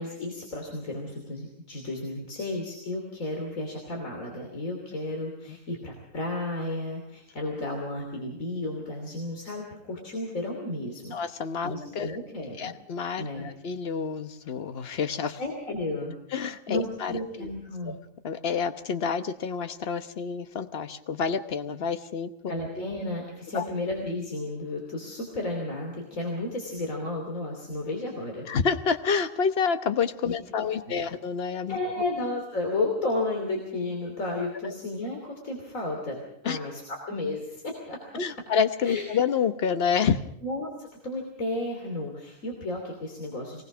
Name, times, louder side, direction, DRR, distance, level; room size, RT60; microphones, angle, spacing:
voice 1, 0.0-12.7 13.2-13.5 15.4-16.1 16.7-18.0 22.5-28.4 30.2-31.0 31.7-38.0 38.8-39.0 40.4-43.6, left 2 dB, 80° left, 1 dB, 3.5 m, -33 dB
voice 2, 11.1-12.1 12.6-15.4 16.3-17.5 17.8-18.0 18.2-22.8 23.5-23.6 28.5-31.8 34.6-34.7 36.4-36.6 38.1-40.2, left 6 dB, 50° left, 10 dB, 1.2 m, -28 dB
23.5 x 19.5 x 6.2 m, 0.80 s
omnidirectional pair, 1.4 m